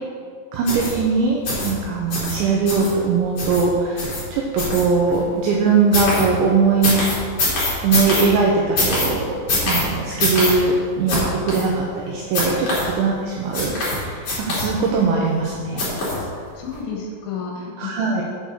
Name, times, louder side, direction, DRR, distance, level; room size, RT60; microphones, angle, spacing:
voice 1, 0.5-7.0 7.8-9.4 9.6-15.9 17.8-18.2, right 4 dB, 80° right, -1 dB, 2.8 m, -20 dB
sound 1, 0.7-0.9 1.4-1.7 2.1-2.3 2.7-2.9 3.4-3.6 4.0-4.2 4.6-5.2 5.9-6.2 6.8-8.2 8.8-9.1 9.5-9.8 10.2-10.5 11.1-11.2 11.5-11.6 12.3-12.8 13.5-14.0 14.2-14.9 15.8-16.2 16.7-16.8, left 2 dB, 35° left, 3.2 m, -22 dB
voice 2, 16.2-18.1, left 5 dB, 65° left, -1 dB, 3.4 m, -32 dB
7.9 x 6.5 x 6.5 m, 2.1 s
omnidirectional pair, 5.9 m